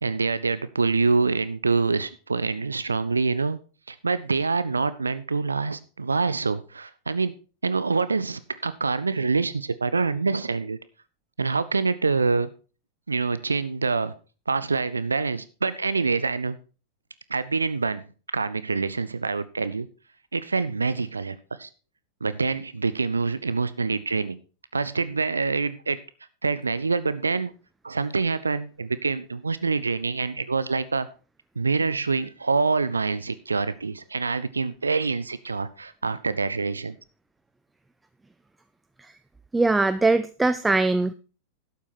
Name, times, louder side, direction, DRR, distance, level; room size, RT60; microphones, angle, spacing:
voice 1, 0.0-3.6 3.9-7.4 7.6-10.8 11.4-12.5 13.1-14.1 14.5-16.6 17.3-18.0 18.3-19.9 20.3-21.7 22.2-24.4 24.7-26.0 26.4-27.5 27.8-31.1 31.6-36.9, right 4 dB, 75° right, 15 dB, 0.5 m, -26 dB
voice 2, 39.5-41.1, right 3 dB, 10° right, 13 dB, 0.5 m, -21 dB
12.0 x 8.4 x 4.2 m, 0.34 s
figure-of-eight pair, 90°, 0 cm